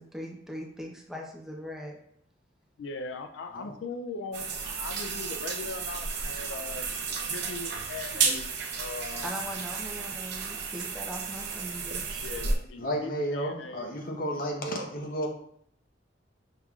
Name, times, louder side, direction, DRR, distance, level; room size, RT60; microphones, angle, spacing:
voice 1, 0.0-2.0 8.1-8.4 9.2-12.3, equal, ahead, -1 dB, 0.6 m, -40 dB
voice 2, 2.8-6.9 7.2-9.3 12.2-13.9, left 3 dB, 75° left, 6 dB, 0.4 m, -40 dB
sound 1, 4.3-12.6, right 5 dB, 60° right, 0.7 m, -32 dB
voice 3, 12.8-15.3, equal, 50° left, 1 dB, 0.9 m, -32 dB
5.6 x 3.5 x 2.3 m, 0.68 s
head